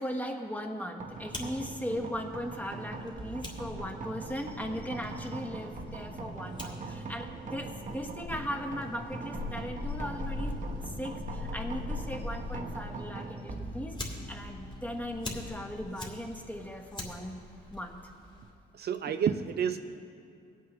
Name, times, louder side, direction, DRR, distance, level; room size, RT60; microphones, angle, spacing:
voice 1, 0.0-10.6 11.0-17.4 17.7-18.0, equal, 10° left, 3 dB, 1.3 m, -38 dB
sound 1, 1.0-18.2, right 3 dB, 40° right, 1.0 m, -43 dB
Fire, 1.1-18.5, left 2 dB, 25° left, 2.3 m, -43 dB
sound 2, 4.3-16.3, left 2 dB, 55° left, 2.2 m, -54 dB
voice 2, 18.7-19.8, right 8 dB, 55° right, 9 dB, 0.5 m, -29 dB
19.5 x 8.2 x 3.1 m, 2.5 s
cardioid pair, 90°, 20 cm